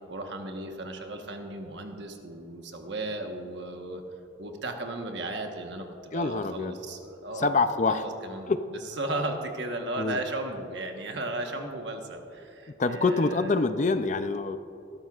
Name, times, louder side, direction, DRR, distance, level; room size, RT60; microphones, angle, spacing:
voice 1, 0.1-4.0 4.4-7.5 7.9-8.5 8.9-13.7, right 2 dB, 65° right, 4 dB, 1.2 m, -35 dB
voice 2, 6.1-6.8 7.4-8.0 8.5-8.6 10.0-10.2 12.8-14.6, left 3 dB, 40° left, 10 dB, 0.4 m, -25 dB
18.5 x 13.0 x 2.4 m, 2.8 s
head